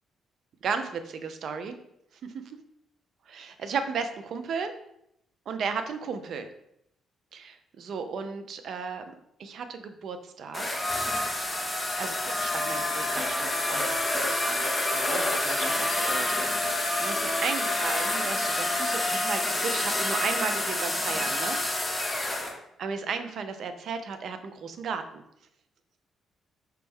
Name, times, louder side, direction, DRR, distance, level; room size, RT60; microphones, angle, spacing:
voice 1, 0.6-1.7 2.2-2.6 3.3-4.8 5.5-6.5 7.3-9.1 9.4-10.7 11.4-11.6 12.0-21.6 22.8-25.2, right 5 dB, 65° right, 9 dB, 0.4 m, -35 dB
sound 1, 10.5-22.5, left 1 dB, 15° left, 0.8 m, -28 dB
4.3 x 2.0 x 3.4 m, 0.77 s
cardioid pair, 90°, 0 cm